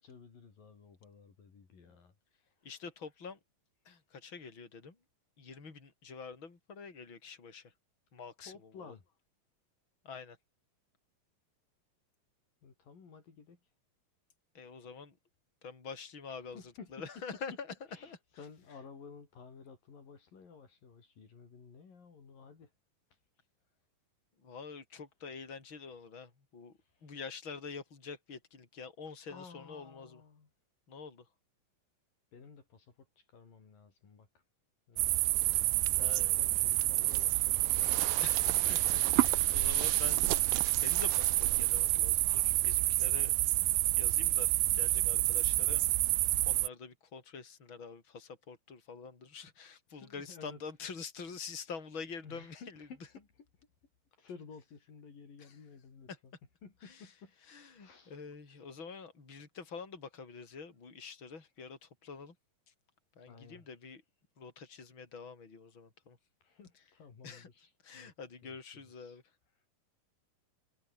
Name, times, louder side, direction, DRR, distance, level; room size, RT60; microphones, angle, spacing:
voice 1, 0.0-2.1 8.4-9.0 12.6-13.6 16.5-17.2 17.9-22.7 27.0-27.2 29.3-30.5 32.3-34.3 34.9-35.2 35.9-38.7 40.6-40.7 41.9-42.0 49.9-50.6 52.2-53.2 53.6-53.7 54.2-56.3 56.6-57.3 57.8-58.1 63.3-63.7 66.4-68.1 68.4-69.2, left 5 dB, 70° left, 6.2 m, -54 dB
voice 2, 2.6-3.4 3.8-4.9 5.4-7.7 8.1-8.9 10.0-10.4 14.5-15.1 15.6-17.7 18.0-18.2 24.4-26.7 27.0-30.2 30.9-31.2 36.0-36.4 38.2-40.2 40.8-43.3 43.9-45.8 46.1-52.9 55.4-55.6 56.1-56.2 56.8-57.1 57.5-62.3 63.2-64.0 64.4-66.2 67.2-67.5 67.8-69.2, left 5 dB, 35° left, 5.3 m, -46 dB
sound 1, 35.0-46.7, right 17 dB, 75° right, 2.5 m, -28 dB
omnidirectional pair, 4.1 m